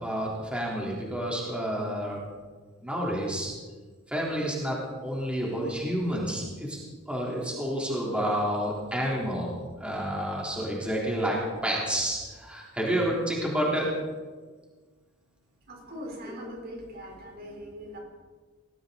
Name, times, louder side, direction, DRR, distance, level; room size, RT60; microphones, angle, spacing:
voice 1, 0.0-2.2 2.8-3.5 4.1-6.8 7.1-9.5 9.8-11.4 11.6-13.9 16.3-16.4, equal, 5° right, -4 dB, 3.6 m, -29 dB
voice 2, 15.7-18.0, equal, 50° right, 0 dB, 4.1 m, -41 dB
19.5 x 18.5 x 4.0 m, 1.4 s
head